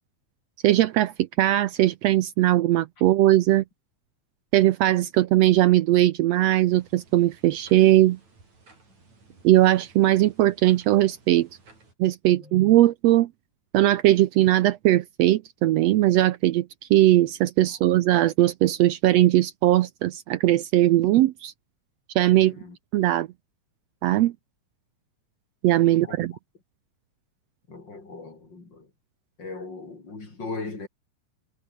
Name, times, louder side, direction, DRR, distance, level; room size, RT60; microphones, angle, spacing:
voice 1, 0.6-3.6 4.5-8.2 9.4-11.5 12.0-13.3 13.7-21.5 22.1-22.5 22.9-23.3 24.0-24.3 25.6-26.3, right 15 dB, 75° right, 1.6 m, -20 dB
sound 1, 6.8-11.9, right 3 dB, 60° right, 8.4 m, -56 dB
voice 2, 12.3-12.6 22.4-22.8 25.9-26.2 27.7-28.9 29.4-30.9, left 3 dB, 35° left, 5.3 m, -38 dB
omnidirectional pair, 3.6 m